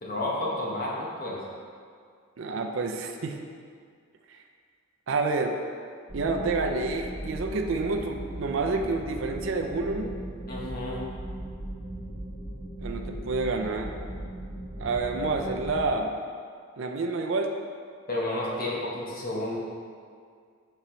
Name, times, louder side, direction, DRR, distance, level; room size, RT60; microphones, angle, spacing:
voice 1, 0.0-1.4 10.5-11.0 18.1-19.6, left 1 dB, 45° left, -4 dB, 1.0 m, -31 dB
voice 2, 2.4-3.4 4.3-4.4 5.1-5.6 6.1-10.1 12.8-13.9 14.8-16.2 16.8-17.5, right 3 dB, 65° right, 3 dB, 0.4 m, -28 dB
sound 1, 6.1-15.8, right 1 dB, 15° right, 1.2 m, -38 dB
5.6 x 4.7 x 3.9 m, 2.1 s
head